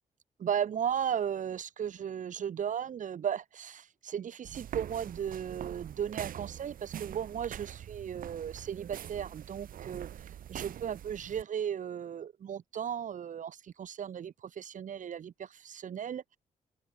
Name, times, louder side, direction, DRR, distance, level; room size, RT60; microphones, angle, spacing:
voice 1, 0.4-16.4, right 8 dB, 65° right, 1.0 m, -36 dB
sound 1, 4.4-11.4, right 10 dB, 80° right, 2.1 m, -44 dB
open air
cardioid pair, 65°, 14 cm